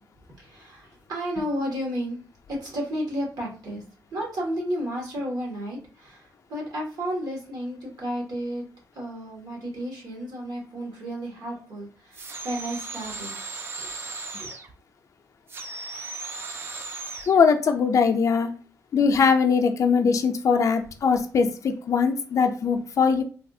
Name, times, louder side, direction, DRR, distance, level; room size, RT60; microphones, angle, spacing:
voice 1, 0.4-2.2 2.5-3.8 4.1-8.6 8.9-13.3 13.8-13.9 14.4-14.5, equal, 70° right, -1 dB, 1.3 m, -32 dB
sound 1, 12.1-14.7 15.5-17.4, right 3 dB, 35° right, 0.4 m, -36 dB
voice 2, 17.3-18.5 18.9-23.2, left 5 dB, 50° left, 5 dB, 0.4 m, -21 dB
3.4 x 2.3 x 2.6 m, 0.38 s
wide cardioid pair, 170°, 7 cm